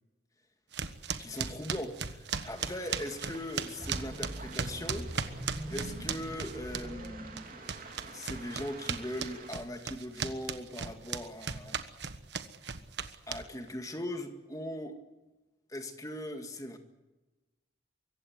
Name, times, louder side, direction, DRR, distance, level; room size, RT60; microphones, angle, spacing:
sound 1, 0.7-7.1 7.4-13.7, right 6 dB, 65° right, 1.3 m, -36 dB
voice 1, 1.2-5.1 5.4-11.8 13.3-15.0 15.7-16.8, left 1 dB, 20° left, 6 dB, 1.9 m, -40 dB
Waves surf, 2.3-9.5, right 4 dB, 45° right, 3.8 m, -50 dB
sound 2, 3.8-8.1, right 1 dB, 20° right, 6.8 m, -43 dB
24.5 x 16.0 x 9.3 m, 1.1 s
head